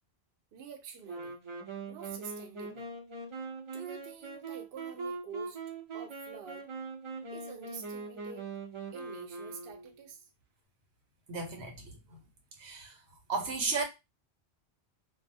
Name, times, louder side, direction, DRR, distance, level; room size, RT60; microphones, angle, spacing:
voice 1, 0.5-1.3 1.9-2.9 3.7-5.6 5.9-6.7 7.3-8.5 8.9-10.3, right 7 dB, 65° right, 0.7 m, -47 dB
Wind instrument woodwind instrument, 1.0-10.1, right 3 dB, 40° right, 0.5 m, -42 dB
voice 2, 11.3-12.2 12.6-13.0 13.3-13.8, right 4 dB, 90° right, 1.1 m, -34 dB
2.4 x 2.3 x 2.6 m
omnidirectional pair, 1.1 m